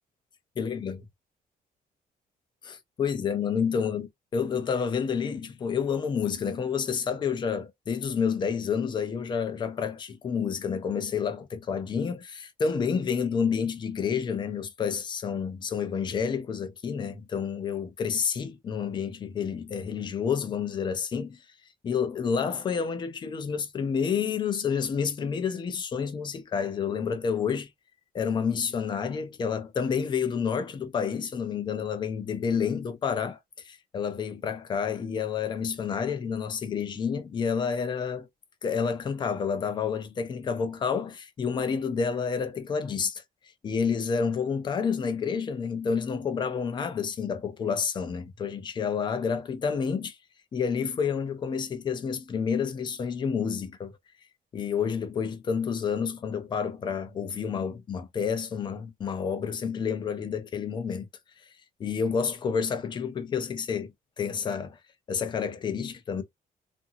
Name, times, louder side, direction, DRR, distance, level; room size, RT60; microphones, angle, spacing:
voice 1, 0.6-1.0 2.6-4.1 4.3-21.4 21.8-27.7 28.1-33.4 33.6-38.3 38.6-43.2 43.6-50.2 50.5-54.0 54.5-61.1 61.8-63.9 64.2-64.8 65.1-66.2, left 6 dB, 30° left, 0.6 m, -29 dB
2.7 x 2.6 x 2.7 m
cardioid pair, 175°, 16 cm